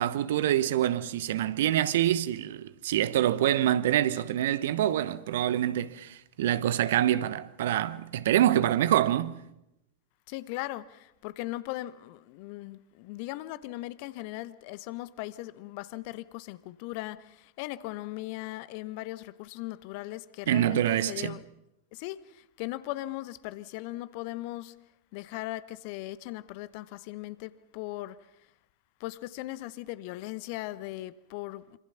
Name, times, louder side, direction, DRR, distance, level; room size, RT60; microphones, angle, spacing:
voice 1, 0.0-9.3 20.5-21.4, right 12 dB, 55° right, 1.0 m, -26 dB
voice 2, 10.3-21.4 21.9-24.7 25.1-28.2 29.0-31.8, left 17 dB, 45° left, 1.0 m, -38 dB
26.0 x 26.0 x 5.8 m
figure-of-eight pair, 90°, 0 cm